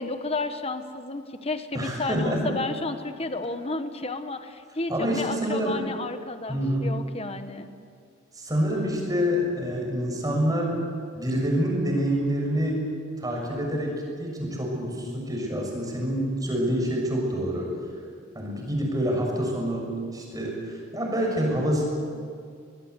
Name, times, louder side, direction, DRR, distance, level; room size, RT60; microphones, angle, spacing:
voice 1, 0.0-7.7, left 2 dB, 30° left, 8 dB, 1.3 m, -32 dB
voice 2, 1.7-2.5 4.9-5.8 6.5-6.9 8.3-10.8 11.1-12.8 13.2-17.7 18.3-21.8, equal, 20° right, 0 dB, 6.6 m, -27 dB
25.0 x 20.0 x 8.2 m, 2.2 s
head